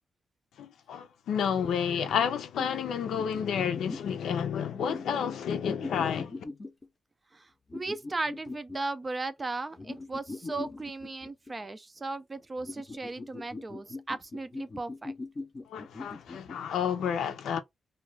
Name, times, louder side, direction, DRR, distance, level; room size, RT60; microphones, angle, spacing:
voice 1, 0.6-6.4 15.7-17.6, left 8 dB, 85° left, 0.5 m, -30 dB
sound 1, 2.6-2.7 3.2-4.1 4.7-6.9 7.7-8.8 9.8-11.5 12.6-16.6, left 3 dB, 25° left, 0.6 m, -41 dB
voice 2, 7.7-15.1, right 3 dB, 20° right, 0.3 m, -36 dB
2.4 x 2.3 x 3.1 m
wide cardioid pair, 160°, 0 cm